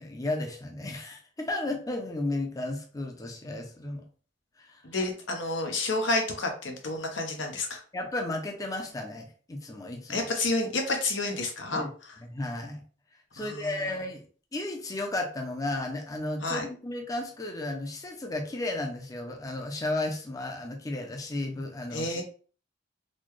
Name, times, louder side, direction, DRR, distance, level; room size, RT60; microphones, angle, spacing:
voice 1, 0.0-4.1 4.6-4.8 7.9-10.3 11.7-11.9 12.2-12.8 13.3-14.3 14.5-22.2, left 2 dB, 20° left, 3 dB, 0.5 m, -34 dB
voice 2, 4.8-7.8 10.1-11.8 13.4-13.8 16.4-16.6 21.9-22.2, left 2 dB, 90° left, 3 dB, 0.9 m, -30 dB
4.1 x 2.2 x 3.1 m, 0.40 s
head